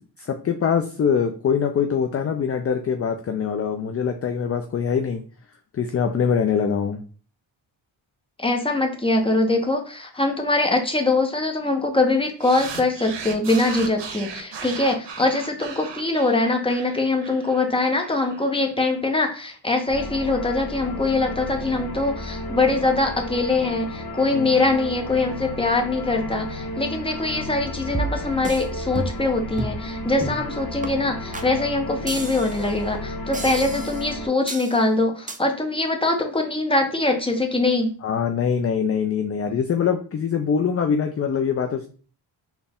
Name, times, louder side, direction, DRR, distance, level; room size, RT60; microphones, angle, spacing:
voice 1, 0.2-5.2 5.7-7.0 24.3-24.5 38.0-41.9, left 7 dB, 30° left, 6 dB, 0.4 m, -23 dB
voice 2, 8.4-37.9, left 2 dB, 10° left, 3 dB, 0.8 m, -23 dB
sound 1, 12.4-18.9, right 6 dB, 60° right, 0.8 m, -37 dB
sound 2, 19.9-34.3, left 1 dB, 45° left, 0.9 m, -33 dB
sound 3, 27.9-28.6 29.0-29.3 29.6-29.8 30.2-30.5 30.8-30.9 31.3-31.5 32.1-32.7 33.3-34.1 34.5-34.8 35.3-35.4, right 3 dB, 15° right, 0.5 m, -31 dB
4.0 x 2.3 x 3.5 m, 0.39 s
cardioid pair, 65°, 48 cm